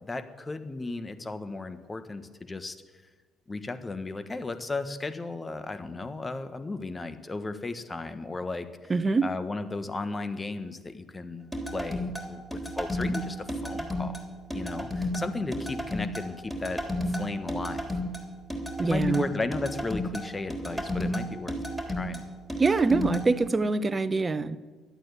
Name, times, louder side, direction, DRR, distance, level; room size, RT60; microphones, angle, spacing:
voice 1, 0.0-2.8 3.5-8.9 9.2-14.2 14.5-18.0 18.8-21.6 21.9-22.3, left 3 dB, 25° left, 10 dB, 1.4 m, -35 dB
voice 2, 8.9-9.3 18.8-19.2 22.6-24.6, right 3 dB, 30° right, 14 dB, 0.9 m, -24 dB
sound 1, 11.5-23.2, left 1 dB, ahead, 3.5 m, -32 dB
12.0 x 8.9 x 9.7 m, 1.4 s
supercardioid pair, 65°, 0 cm